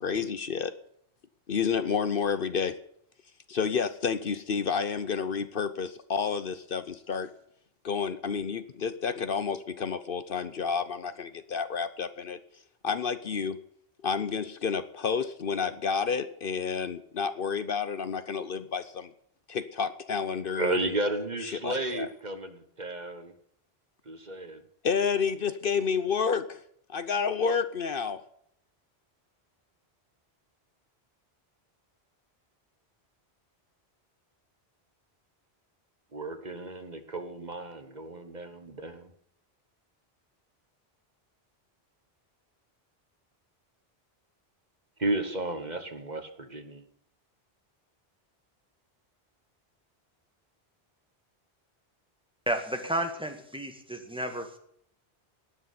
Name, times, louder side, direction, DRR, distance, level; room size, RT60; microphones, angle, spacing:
voice 1, 0.0-0.7 1.5-2.8 3.5-7.3 7.8-12.4 12.8-13.6 14.0-19.1 19.5-21.0 21.4-22.1 24.8-26.6 26.9-28.2, left 6 dB, 60° left, 12 dB, 1.0 m, -30 dB
voice 2, 20.6-23.3 24.1-24.6 36.1-39.1 45.0-46.8, right 2 dB, 45° right, 8 dB, 1.5 m, -33 dB
voice 3, 52.5-54.6, right 1 dB, 5° right, 5 dB, 1.9 m, -32 dB
18.5 x 6.6 x 9.4 m, 0.68 s
omnidirectional pair, 1.1 m